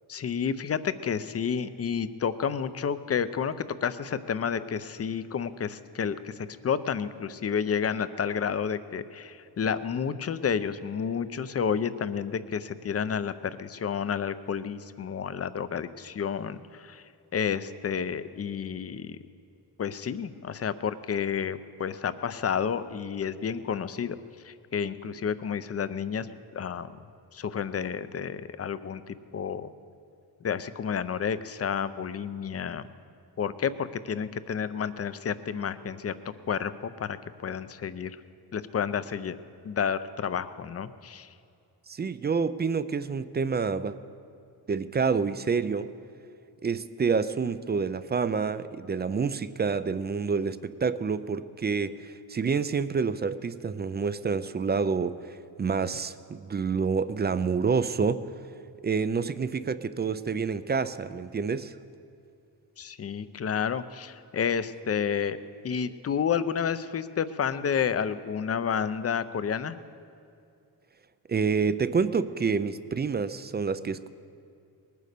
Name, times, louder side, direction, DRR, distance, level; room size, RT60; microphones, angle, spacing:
voice 1, 0.1-3.6 3.8-17.0 17.3-19.2 19.8-24.2 24.4-26.3 26.5-26.9 27.3-29.7 30.4-32.8 33.4-36.1 36.5-37.2 37.4-38.2 38.5-39.4 39.6-41.3 62.8-65.4 65.6-69.8, left 7 dB, 40° left, 14 dB, 0.6 m, -30 dB
voice 2, 41.9-44.0 44.7-45.9 46.6-58.2 58.8-61.7 71.3-74.1, right 5 dB, 25° right, 14 dB, 0.4 m, -28 dB
20.0 x 9.4 x 6.7 m, 2.5 s
wide cardioid pair, 120°, 39 cm